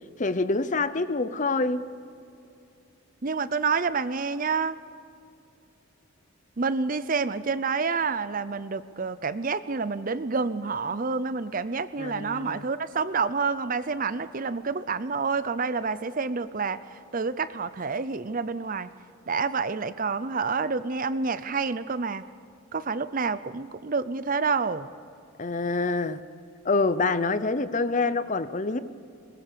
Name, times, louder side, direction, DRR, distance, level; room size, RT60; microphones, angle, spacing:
voice 1, 0.2-1.9 12.0-12.7 25.4-26.2 26.6-28.8, left 3 dB, 35° left, 13 dB, 0.7 m, -26 dB
voice 2, 3.2-4.8 6.6-16.8 17.1-18.9 19.3-22.2 22.7-24.9, right 4 dB, 40° right, 14 dB, 0.6 m, -28 dB
21.5 x 21.0 x 6.9 m, 2.6 s
head